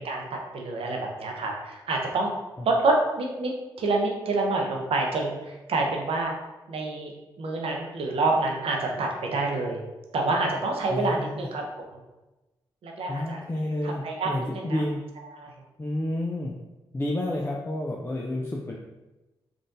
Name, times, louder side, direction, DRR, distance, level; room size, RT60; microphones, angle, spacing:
voice 1, 0.0-2.3 2.6-6.3 6.7-7.1 7.4-9.8 10.1-11.6 11.9-12.0 12.8-13.4 13.8-14.8 15.3-15.5, right 2 dB, 65° right, 1 dB, 0.6 m, -27 dB
voice 2, 10.9-11.5 13.1-15.0 15.8-16.6 16.9-18.8, left 1 dB, 25° left, -1 dB, 0.5 m, -30 dB
3.6 x 2.5 x 2.6 m, 1.1 s
supercardioid pair, 40°, 10 cm